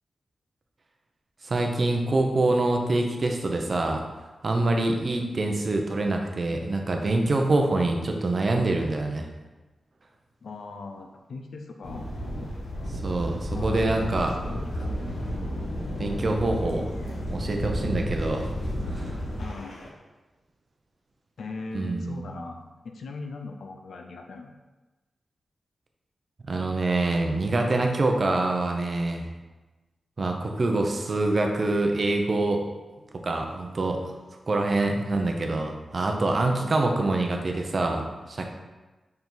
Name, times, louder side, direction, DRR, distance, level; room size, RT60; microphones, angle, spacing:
voice 1, 1.4-4.0 4.4-9.3 13.0-14.3 16.0-16.9 17.3-18.5 18.9-19.2 21.7-22.2 26.5-29.3 30.2-32.6 33.2-34.0 34.5-38.5, right 2 dB, 35° right, 3 dB, 0.7 m, -25 dB
voice 2, 10.4-12.1 13.5-15.2 19.4-19.9 21.4-24.5 36.2-36.8, left 3 dB, 70° left, 3 dB, 0.6 m, -39 dB
sound 1, 11.8-19.9, equal, 90° left, 1.3 m, -32 dB
5.3 x 4.8 x 4.0 m, 1.2 s
wide cardioid pair, 165°, 0 cm